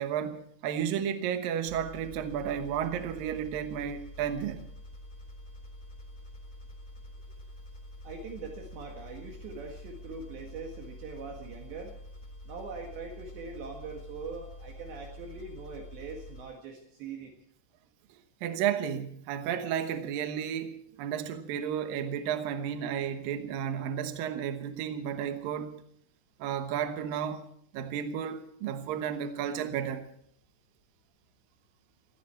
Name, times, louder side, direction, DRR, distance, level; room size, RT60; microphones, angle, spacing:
voice 1, 0.0-4.7 18.4-25.8 26.4-27.4 27.7-30.1, right 9 dB, 80° right, 2.0 m, -32 dB
sound 1, 1.7-16.4, left 1 dB, 20° left, 0.8 m, -47 dB
voice 2, 8.0-11.9 12.5-17.3, right 4 dB, 65° right, 3.8 m, -42 dB
20.0 x 15.0 x 4.5 m
omnidirectional pair, 5.8 m